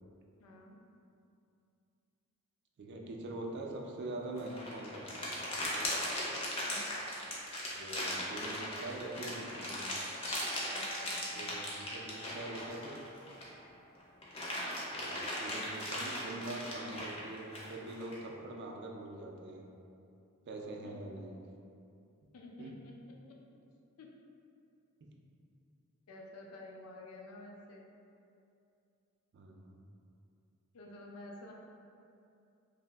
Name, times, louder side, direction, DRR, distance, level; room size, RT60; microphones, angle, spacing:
voice 1, 0.4-0.8 6.6-6.8 10.7-11.2 20.8-21.0 22.3-23.0 23.3-23.4 24.0-24.1 26.1-27.9 30.7-31.5, left 2 dB, 85° left, -1 dB, 0.4 m, -50 dB
voice 2, 2.8-5.4 7.7-9.8 11.3-13.0 14.9-19.7 20.5-21.4 22.6-22.8 25.0-25.1 29.3-29.8, right 2 dB, 55° right, 0 dB, 0.3 m, -44 dB
sound 1, 4.4-13.6 14.0-18.2, left 1 dB, 25° left, 0.5 m, -38 dB
Glockenspiel, 10.3-14.4, right 2 dB, 65° left, 0.8 m, -52 dB
2.7 x 2.0 x 3.2 m, 2.6 s
head